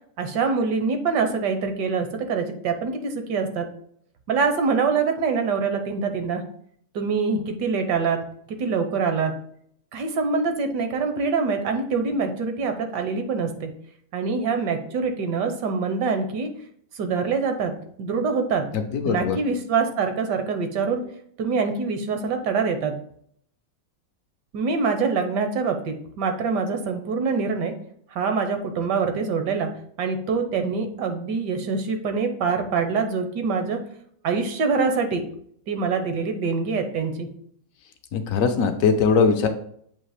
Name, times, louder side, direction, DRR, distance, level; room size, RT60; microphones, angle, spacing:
voice 1, 0.2-3.7 4.3-6.4 6.9-9.3 9.9-13.7 14.1-16.5 16.9-18.7 19.0-21.0 21.4-22.9 24.5-27.7 28.1-33.8 34.2-35.2 35.7-37.3, right 5 dB, 70° right, 6 dB, 1.4 m, -25 dB
voice 2, 18.7-19.4 38.1-39.5, left 5 dB, 65° left, 6 dB, 0.9 m, -21 dB
7.4 x 2.9 x 4.9 m, 0.65 s
omnidirectional pair, 2.0 m